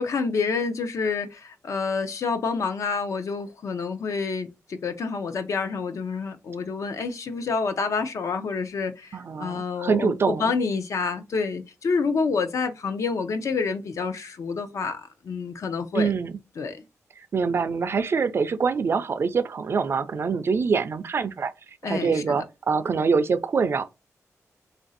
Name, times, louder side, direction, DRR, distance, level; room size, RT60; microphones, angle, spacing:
voice 1, 0.0-16.1 16.6-16.8 21.8-22.4, left 4 dB, 65° left, 0.6 m, -28 dB
voice 2, 9.1-10.5 15.9-16.4 17.3-21.5 21.8-23.8, right 5 dB, 45° right, 0.4 m, -24 dB
3.2 x 2.5 x 3.9 m
wide cardioid pair, 165°, 6 cm